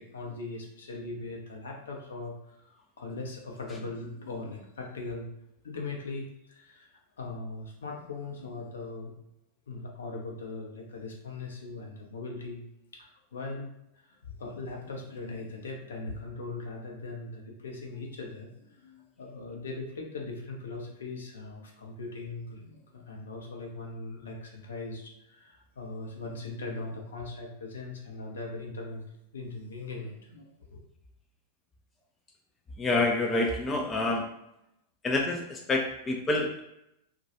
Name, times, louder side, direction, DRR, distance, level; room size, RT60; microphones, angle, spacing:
voice 1, 0.0-5.3 5.6-9.1 9.7-12.6 12.9-13.7 14.0-29.0 29.3-30.8, left 3 dB, 65° left, 0 dB, 0.6 m, -40 dB
voice 2, 32.8-34.4 35.0-36.6, left 2 dB, 20° left, 1 dB, 0.4 m, -27 dB
2.2 x 2.2 x 2.9 m, 0.82 s
figure-of-eight pair, 90°, 0 cm